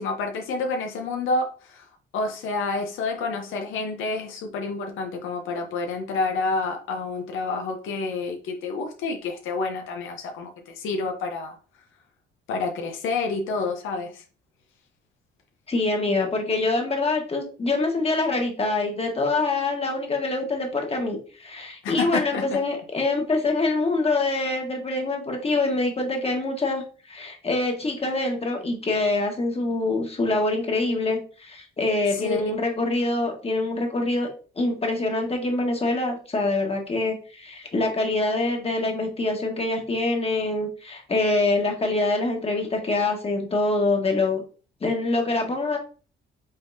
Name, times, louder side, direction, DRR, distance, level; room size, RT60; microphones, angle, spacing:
voice 1, 0.0-1.9 2.1-11.5 12.5-14.2 21.8-22.6 32.1-32.4, left 3 dB, 85° left, 3 dB, 0.8 m, -29 dB
voice 2, 15.7-34.3 34.6-44.4 44.8-45.8, left 2 dB, 30° left, 2 dB, 1.4 m, -25 dB
5.2 x 3.5 x 2.7 m, 0.38 s
cardioid pair, 90°, 20 cm